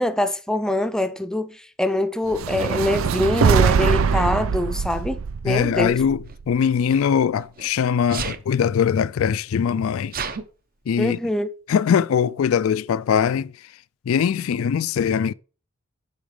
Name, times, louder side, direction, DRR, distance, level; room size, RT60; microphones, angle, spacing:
voice 1, 0.0-6.0 11.0-11.5, left 1 dB, 5° left, 0.6 m, -24 dB
sound 1, 2.3-6.6, right 6 dB, 70° right, 0.4 m, -22 dB
Sneeze, 2.6-2.7 3.8-4.2 6.2-7.7 8.1-8.5 9.2-9.3 9.5-10.4, right 5 dB, 45° right, 0.9 m, -33 dB
voice 2, 5.4-10.1 10.9-11.2 11.7-13.5 14.1-15.3, left 7 dB, 70° left, 0.3 m, -21 dB
8.7 x 6.1 x 3.3 m
head